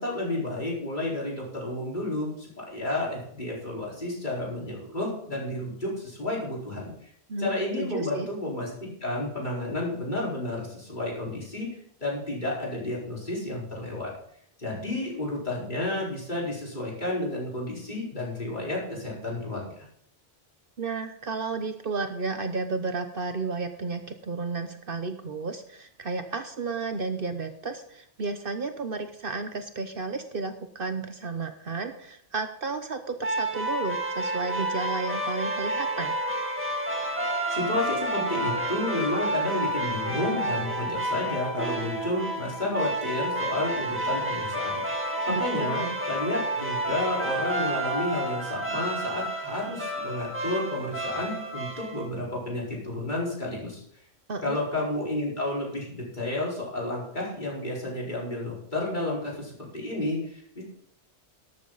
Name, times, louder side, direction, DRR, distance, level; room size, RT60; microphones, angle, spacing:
voice 1, 0.0-7.1 7.4-14.1 14.6-19.9 37.5-44.8 45.3-53.8 54.4-60.6, left 1 dB, 40° left, -4 dB, 4.7 m, -31 dB
voice 2, 7.3-8.3 20.8-36.2 45.3-46.0 54.3-54.6, right 4 dB, 55° right, 8 dB, 1.1 m, -32 dB
sound 1, 33.2-52.1, right 1 dB, 10° right, 2.0 m, -30 dB
13.0 x 12.5 x 4.0 m, 0.68 s
omnidirectional pair, 1.2 m